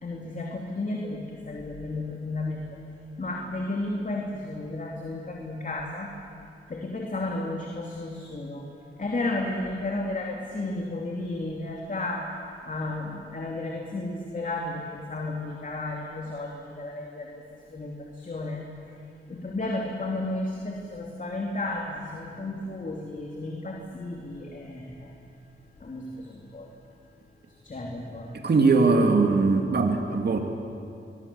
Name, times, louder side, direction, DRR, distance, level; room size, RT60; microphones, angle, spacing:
voice 1, 0.0-2.6 3.2-6.1 6.7-8.6 9.0-12.3 12.7-17.4 17.7-18.7 19.3-25.1 25.8-26.7 27.6-28.3, left 2 dB, 40° left, -1 dB, 3.2 m, -33 dB
voice 2, 28.4-30.4, right 3 dB, 50° right, 3 dB, 2.6 m, -21 dB
24.5 x 22.0 x 7.2 m, 2.5 s
cardioid pair, 75°, 21 cm